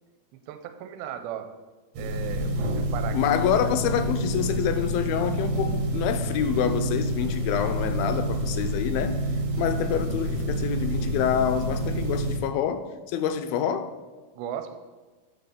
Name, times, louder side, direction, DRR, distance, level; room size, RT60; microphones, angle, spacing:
voice 1, 0.5-1.5 2.0-3.6 9.6-10.0 14.4-14.8, right 9 dB, 85° right, 2.5 m, -37 dB
sound 1, 1.9-12.4, right 1 dB, 60° right, 2.3 m, -28 dB
voice 2, 3.1-9.2 9.6-13.9, left 8 dB, 80° left, 2.3 m, -27 dB
9.6 x 4.3 x 6.7 m
omnidirectional pair, 4.4 m